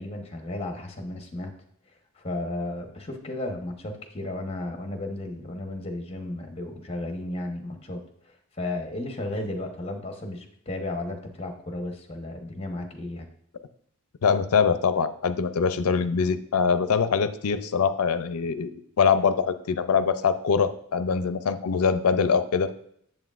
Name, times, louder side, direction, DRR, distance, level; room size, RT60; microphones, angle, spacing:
voice 1, 0.0-1.5 2.2-13.3, left 1 dB, 25° left, 4 dB, 1.0 m, -34 dB
voice 2, 14.2-22.7, left 6 dB, 80° left, 12 dB, 0.5 m, -23 dB
7.9 x 7.5 x 2.5 m, 0.67 s
head